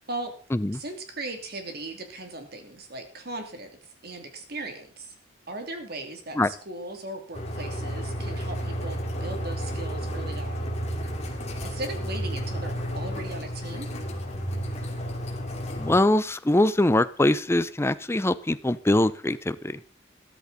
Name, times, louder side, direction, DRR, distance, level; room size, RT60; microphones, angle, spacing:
voice 1, 0.7-5.1 5.5-10.7 11.3-13.9, right 2 dB, 55° right, 5 dB, 2.7 m, -38 dB
sound 1, 7.3-16.0, equal, 35° left, 2.7 m, -32 dB
voice 2, 15.8-19.6, left 1 dB, 15° left, 15 dB, 0.6 m, -22 dB
13.5 x 13.0 x 4.0 m, 0.39 s
head